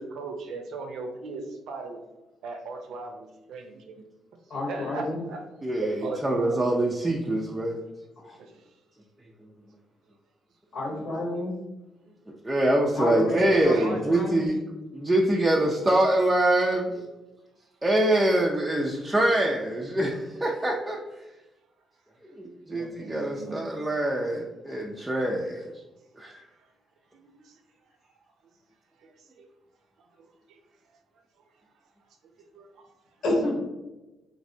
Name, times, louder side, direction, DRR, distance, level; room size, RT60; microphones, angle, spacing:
voice 1, 0.0-2.0 2.4-4.0 4.7-5.4 5.8-6.6 13.4-14.4 22.7-23.6 32.6-32.7, right 3 dB, 80° right, 4 dB, 0.5 m, -36 dB
voice 2, 4.5-5.2 8.2-8.3 10.7-11.5 12.9-14.5 33.2-33.6, left 1 dB, 70° left, -2 dB, 1.0 m, -29 dB
voice 3, 5.6-7.8 12.4-14.6 14.9-17.0 17.8-21.0 22.4-25.6 26.2-26.4, right 1 dB, 15° right, -2 dB, 0.4 m, -24 dB
3.2 x 2.5 x 2.6 m, 1.0 s
cardioid pair, 90°, 0 cm